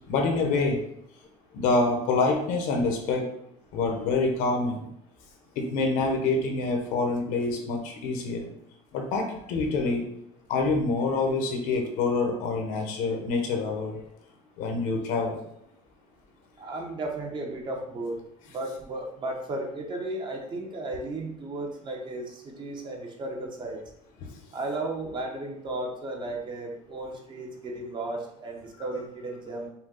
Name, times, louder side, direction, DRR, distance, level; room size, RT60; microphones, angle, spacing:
voice 1, 0.1-0.8 1.5-3.3 3.7-4.8 5.6-8.5 8.9-10.1 10.5-14.0 14.6-15.4 24.2-24.3, left 3 dB, 75° left, 3 dB, 1.1 m, -26 dB
voice 2, 16.6-18.2 18.5-23.8 24.5-29.7, right 2 dB, 35° right, 1 dB, 1.0 m, -34 dB
5.8 x 2.3 x 3.8 m, 0.75 s
cardioid pair, 130°, 14 cm